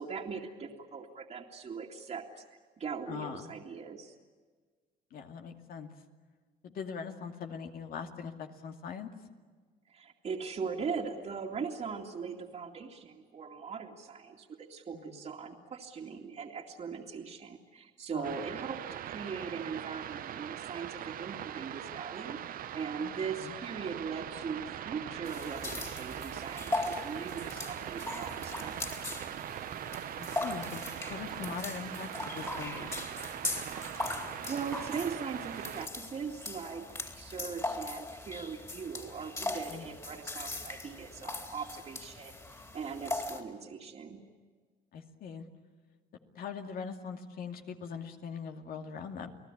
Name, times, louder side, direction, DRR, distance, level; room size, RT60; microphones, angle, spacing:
voice 1, 0.0-2.4 2.8-4.2 9.9-28.9 33.8-33.9 34.4-44.2, right 5 dB, 40° right, -1 dB, 2.4 m, -40 dB
voice 2, 3.1-3.5 5.1-5.9 6.6-9.1 14.9-15.2 18.1-18.4 23.0-23.5 30.2-33.2 39.7-39.9 44.9-45.5 46.3-49.3, left 6 dB, 60° left, 5 dB, 2.5 m, -42 dB
sound 1, 18.2-35.9, right 11 dB, 60° right, 0.9 m, -41 dB
sound 2, 25.2-43.4, left 2 dB, 20° left, 3.6 m, -40 dB
30.0 x 19.0 x 10.0 m, 1.5 s
cardioid pair, 110°, 17 cm